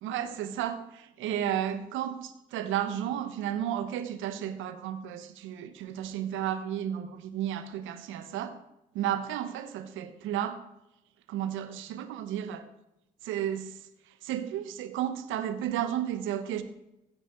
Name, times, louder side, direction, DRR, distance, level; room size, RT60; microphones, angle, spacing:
voice 1, 0.0-8.6 8.9-10.6 11.3-12.6 13.2-13.8 14.2-16.6, right 10 dB, 75° right, 12 dB, 1.3 m, -33 dB
16.0 x 9.7 x 4.6 m, 0.89 s
hypercardioid pair, 45°, 20 cm